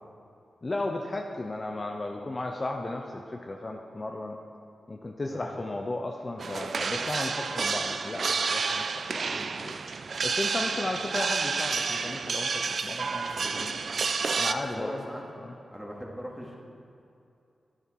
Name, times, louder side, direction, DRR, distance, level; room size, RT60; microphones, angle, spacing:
voice 1, 0.6-4.4 4.9-9.8 10.2-13.8 14.3-15.0 15.4-15.5, left 2 dB, 40° left, 2 dB, 0.8 m, -35 dB
sound 1, 6.4-14.5, right 5 dB, 65° right, 0.4 m, -30 dB
voice 2, 14.5-15.2 15.5-16.6, equal, 5° right, -3 dB, 2.5 m, -40 dB
10.5 x 9.9 x 4.6 m, 2.6 s
cardioid pair, 60°, 0 cm